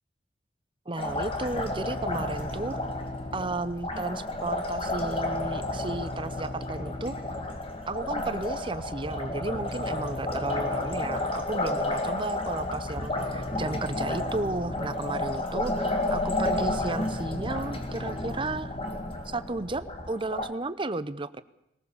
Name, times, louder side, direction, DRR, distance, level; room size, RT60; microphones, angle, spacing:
voice 1, 0.9-2.8 3.3-7.2 7.9-18.7 19.2-21.4, right 2 dB, 30° right, 14 dB, 0.8 m, -33 dB
Liquid, 1.0-20.5, left 2 dB, 30° left, 2.0 m, -32 dB
sound 1, 1.1-20.1, left 1 dB, 45° left, 2.0 m, -40 dB
21.0 x 18.5 x 7.2 m, 0.84 s
head